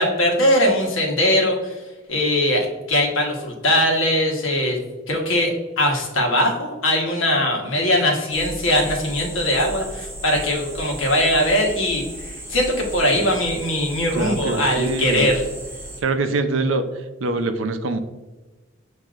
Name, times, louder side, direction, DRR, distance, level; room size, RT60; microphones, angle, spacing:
voice 1, 0.0-1.7 2.1-4.8 5.1-15.4, left 1 dB, 85° left, 0 dB, 1.1 m, -20 dB
sound 1, 8.3-16.0, right 1 dB, 10° right, 0.7 m, -35 dB
voice 2, 14.2-15.3 16.0-16.9 17.2-18.0, right 3 dB, 75° right, 8 dB, 0.5 m, -24 dB
7.4 x 2.7 x 2.4 m, 1.2 s
head